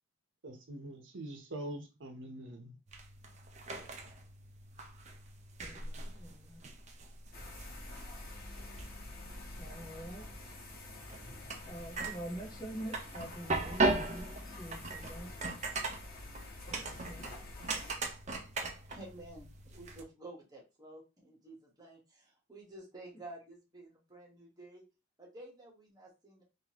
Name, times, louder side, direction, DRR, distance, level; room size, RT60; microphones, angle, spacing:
voice 1, 0.4-2.8, right 1 dB, 65° right, 0.9 m, -44 dB
sound 1, 2.9-20.0, right 3 dB, 35° right, 0.6 m, -39 dB
voice 2, 5.6-6.6 9.6-10.3 11.7-15.6 16.7-17.3, right 1 dB, 20° left, 1.1 m, -46 dB
sound 2, 7.3-17.9, left 2 dB, 50° left, 1.3 m, -48 dB
voice 3, 18.9-24.8 25.2-26.4, right 2 dB, 20° right, 1.4 m, -51 dB
3.8 x 2.8 x 2.9 m
head